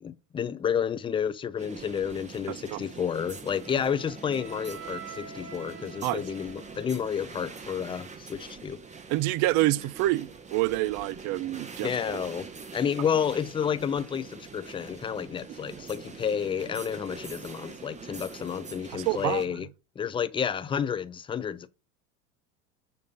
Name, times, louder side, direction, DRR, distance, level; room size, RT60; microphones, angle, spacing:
voice 1, 0.0-8.8 11.8-12.5 12.7-19.7 20.0-21.7, left 7 dB, 15° left, 0.4 m, -30 dB
sound 1, 1.6-19.5, right 5 dB, 20° right, 1.0 m, -44 dB
voice 2, 2.5-2.8 6.0-6.2 9.1-12.2 18.9-19.4, right 17 dB, 50° right, 0.5 m, -27 dB
Wind instrument woodwind instrument, 3.6-7.6, right 5 dB, 65° right, 2.1 m, -46 dB
6.8 x 2.6 x 5.3 m
hypercardioid pair, 85°, 39 cm